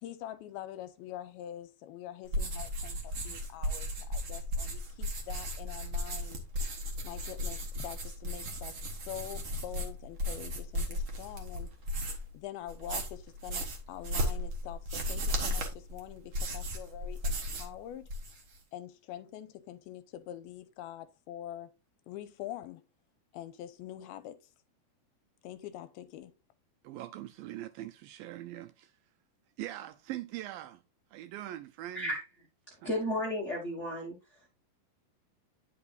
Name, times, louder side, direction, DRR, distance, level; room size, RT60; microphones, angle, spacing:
voice 1, 0.0-6.4 7.0-11.8 12.3-18.1 18.7-21.8 22.1-22.8 23.3-24.5 25.4-26.3, left 12 dB, 90° left, 2.5 m, -45 dB
sound 1, 2.3-12.3 12.7-17.8 18.0-18.6, equal, 60° right, 1.3 m, -35 dB
voice 2, 26.8-28.9 29.6-30.8 31.1-32.1 32.8-32.9, right 14 dB, 80° right, 2.1 m, -42 dB
voice 3, 32.8-34.2, left 1 dB, 55° left, 0.7 m, -33 dB
9.7 x 5.3 x 2.5 m
omnidirectional pair, 4.4 m